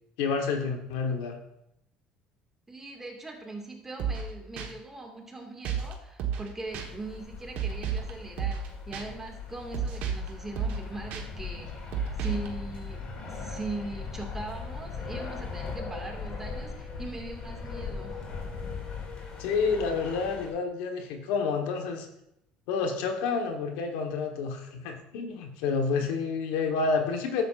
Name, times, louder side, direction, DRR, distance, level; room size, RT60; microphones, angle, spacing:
voice 1, 0.2-1.4 19.4-22.1 22.7-27.4, left 5 dB, 85° left, 4 dB, 1.2 m, -29 dB
voice 2, 2.7-11.9 12.2-18.2, right 2 dB, 15° right, 1 dB, 1.9 m, -40 dB
sound 1, 4.0-4.3 4.6-4.7 5.7-5.9 6.2-6.5 6.7-6.9 7.6-8.1 8.4-8.7 8.9-9.0 9.7-10.3 10.6-10.8 11.1-11.2 11.9-12.5, right 7 dB, 65° right, 1.3 m, -31 dB
sound 2, 6.7-20.5, left 4 dB, 45° left, 2.4 m, -39 dB
12.0 x 7.9 x 2.5 m, 0.82 s
supercardioid pair, 100°, 3 cm